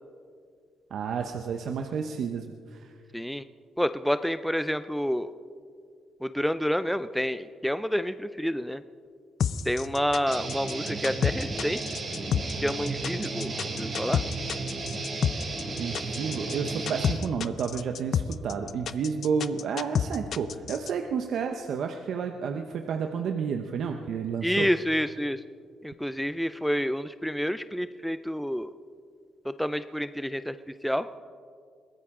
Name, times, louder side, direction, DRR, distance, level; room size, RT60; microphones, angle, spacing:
voice 1, 0.9-2.9 15.8-24.7, right 6 dB, 70° right, 5 dB, 0.8 m, -31 dB
voice 2, 3.1-3.4 3.8-5.3 6.2-8.8 9.7-11.8 12.6-14.2 24.4-25.4 25.8-28.7 29.5-30.6 30.8-31.1, equal, ahead, 12 dB, 0.4 m, -28 dB
sound 1, 9.4-20.9, left 8 dB, 60° left, 0.5 m, -29 dB
Guitar, 10.3-17.1, right 3 dB, 45° right, 3.7 m, -34 dB
22.0 x 16.0 x 3.7 m, 2.2 s
cardioid pair, 90°, 0 cm